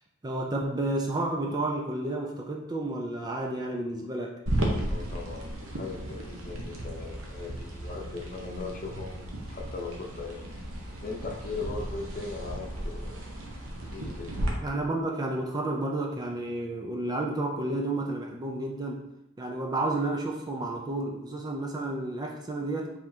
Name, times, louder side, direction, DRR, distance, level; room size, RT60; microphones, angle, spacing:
voice 1, 0.2-4.4 14.6-19.0 19.4-22.9, right 2 dB, 20° right, 1 dB, 0.4 m, -31 dB
sound 1, 4.5-14.5, right 1 dB, 65° right, 0.8 m, -35 dB
voice 2, 4.9-10.4 11.0-13.3 13.9-14.3, left 3 dB, 40° left, 0 dB, 0.7 m, -39 dB
4.9 x 3.6 x 2.7 m, 0.86 s
head